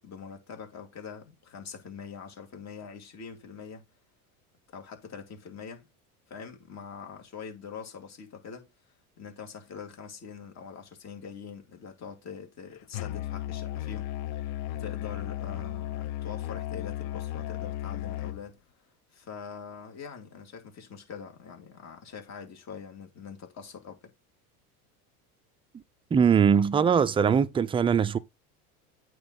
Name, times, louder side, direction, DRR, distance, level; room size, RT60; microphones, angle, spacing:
voice 1, 0.0-3.8 4.7-5.9 6.3-8.7 9.2-18.6 19.1-24.1, left 6 dB, 35° left, 2.4 m, -44 dB
Musical instrument, 12.9-18.4, left 13 dB, 50° left, 0.8 m, -35 dB
voice 2, 26.1-28.2, right 7 dB, 15° right, 0.4 m, -21 dB
8.8 x 3.1 x 5.5 m
hypercardioid pair, 90°, 45 cm